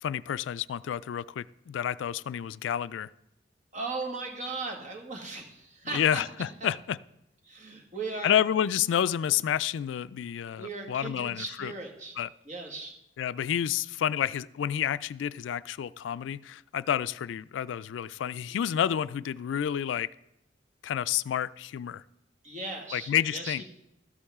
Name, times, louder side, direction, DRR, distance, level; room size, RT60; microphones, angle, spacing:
voice 1, 0.0-3.1 5.9-7.0 8.2-11.7 12.2-12.3 13.2-20.1 20.8-22.0 22.9-23.6, left 9 dB, 90° left, 18 dB, 0.3 m, -29 dB
voice 2, 3.7-6.2 6.6-6.7 7.4-8.4 10.6-12.2 12.5-13.0 22.4-23.7, right 3 dB, 40° right, 2 dB, 1.8 m, -37 dB
13.5 x 8.5 x 3.6 m, 0.85 s
head